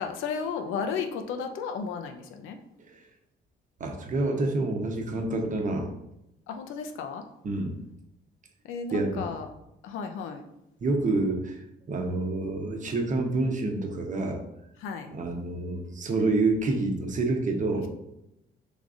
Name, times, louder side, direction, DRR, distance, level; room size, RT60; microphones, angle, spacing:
voice 1, 0.0-2.6 6.5-7.2 8.6-9.5 9.8-10.4 14.8-15.1 17.8-17.9, left 6 dB, 90° left, 6 dB, 0.6 m, -34 dB
voice 2, 3.8-5.9 7.4-7.7 8.9-9.2 10.8-11.6 11.9-14.4 15.1-17.9, right 2 dB, 40° right, 2 dB, 0.9 m, -27 dB
5.2 x 3.6 x 2.5 m, 0.85 s
cardioid pair, 90°, 20 cm